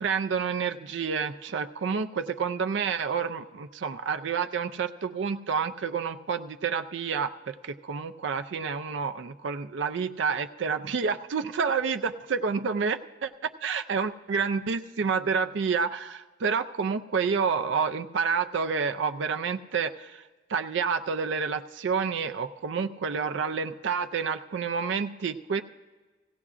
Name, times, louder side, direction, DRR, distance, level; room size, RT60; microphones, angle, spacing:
voice 1, 0.0-20.2 20.5-25.6, right 5 dB, 65° right, 7 dB, 0.4 m, -29 dB
17.0 x 16.5 x 2.5 m, 1.3 s
head